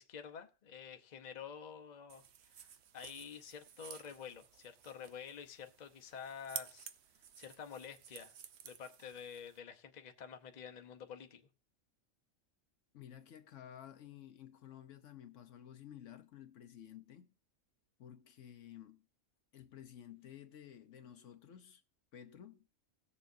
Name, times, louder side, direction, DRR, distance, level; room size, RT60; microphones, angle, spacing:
voice 1, 0.0-6.9 7.4-8.3 8.6-11.5, left 7 dB, 40° left, 0.8 m, -49 dB
sound 1, 2.1-9.6, right 8 dB, 60° right, 0.9 m, -52 dB
voice 2, 12.9-17.3 18.0-19.0 19.5-21.8 22.1-22.6, left 10 dB, 70° left, 1.0 m, -53 dB
18.0 x 6.9 x 2.6 m
omnidirectional pair, 1.4 m